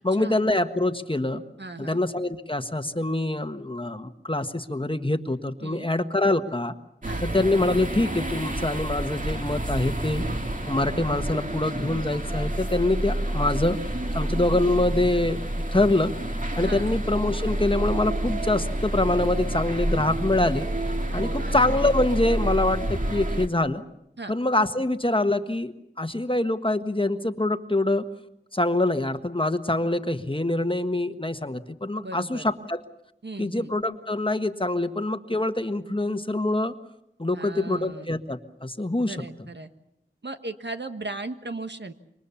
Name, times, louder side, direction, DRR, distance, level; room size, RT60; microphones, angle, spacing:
voice 1, 0.0-1.4 1.8-6.7 7.2-10.2 10.7-13.8 14.1-15.4 15.7-20.7 21.1-23.8 24.3-28.1 28.5-32.8 33.4-36.7 37.2-39.5, left 2 dB, 25° left, 9 dB, 1.4 m, -25 dB
voice 2, 1.6-2.0 5.6-5.9 7.0-7.2 10.3-10.4 16.6-17.0 21.1-21.5 24.2-24.3 32.0-32.4 33.2-33.7 37.3-38.1 39.1-39.7 40.2-41.9, right 2 dB, 65° right, 8 dB, 1.5 m, -37 dB
sound 1, 7.0-23.5, right 1 dB, 45° right, 2.3 m, -29 dB
27.0 x 24.0 x 7.1 m, 0.81 s
wide cardioid pair, 50°, 19 cm